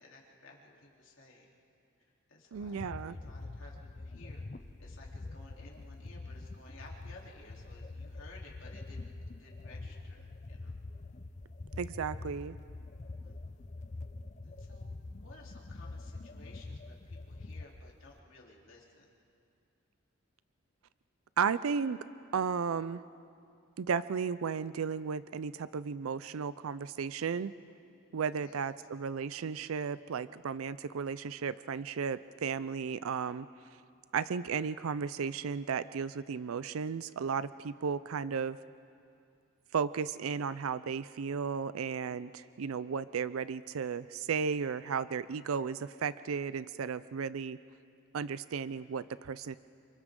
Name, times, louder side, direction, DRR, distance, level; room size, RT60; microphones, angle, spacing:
voice 1, 0.0-1.5 2.3-4.4 4.8-9.1 9.4-10.7 13.2-13.7 14.4-14.9 15.2-19.1 28.3-28.9, left 2 dB, 70° left, -3 dB, 3.3 m, -56 dB
sound 1, 2.5-18.2, left 2 dB, 35° left, 0.6 m, -45 dB
voice 2, 2.5-3.2 11.8-12.6 21.4-22.0 22.3-23.0 23.8-27.5 28.1-33.5 34.1-38.6 39.7-47.6 48.1-49.6, right 6 dB, 80° right, 16 dB, 0.4 m, -34 dB
29.0 x 27.0 x 3.7 m, 2.4 s
head